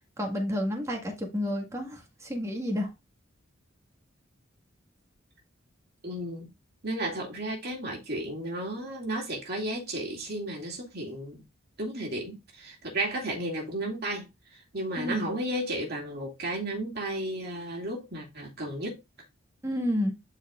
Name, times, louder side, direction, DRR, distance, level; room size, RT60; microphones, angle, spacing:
voice 1, 0.2-2.9 14.9-15.3 19.6-20.1, left 1 dB, 15° right, 1.7 m, -30 dB
voice 2, 6.0-6.5 6.8-11.4 11.8-14.3 14.5-19.0, right 1 dB, 50° right, 2.4 m, -33 dB
11.5 x 4.2 x 2.5 m
head